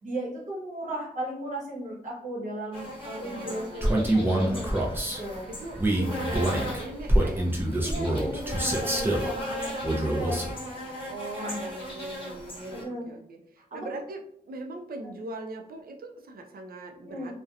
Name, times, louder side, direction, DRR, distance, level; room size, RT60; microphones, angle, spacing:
voice 1, 0.0-4.8 5.2-5.5 7.8-10.4 11.4-11.6 12.7-13.1 13.7-13.8 17.1-17.3, right 1 dB, 50° right, -3 dB, 0.9 m, -36 dB
sound 1, 2.7-12.8, left 1 dB, 35° left, 0.9 m, -37 dB
voice 2, 3.2-3.9 5.5-7.5 11.1-14.2 14.5-17.3, right 2 dB, 70° right, 3 dB, 0.4 m, -40 dB
Male speech man speaking, 3.8-5.2 5.8-9.3 9.8-10.5, right 1 dB, 15° right, 0.4 m, -25 dB
2.7 x 2.1 x 2.4 m, 0.69 s
wide cardioid pair, 145°, 16 cm